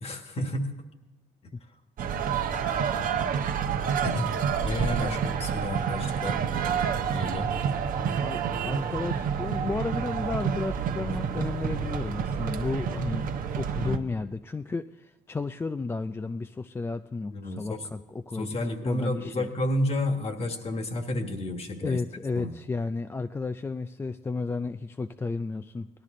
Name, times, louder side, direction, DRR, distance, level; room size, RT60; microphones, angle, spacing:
voice 1, 0.0-0.7 4.0-4.3 4.6-6.4 7.1-7.5 13.8-14.0 17.3-17.8 18.3-22.0 22.3-22.5, left 1 dB, 35° left, 6 dB, 1.6 m, -31 dB
sound 1, 2.0-14.0, right 7 dB, 55° right, 1.0 m, -29 dB
voice 2, 8.2-13.3 13.6-18.6 18.8-19.5 21.8-25.9, left 3 dB, 15° left, 9 dB, 0.3 m, -33 dB
17.5 x 12.0 x 3.8 m, 1.2 s
cardioid pair, 110°, 17 cm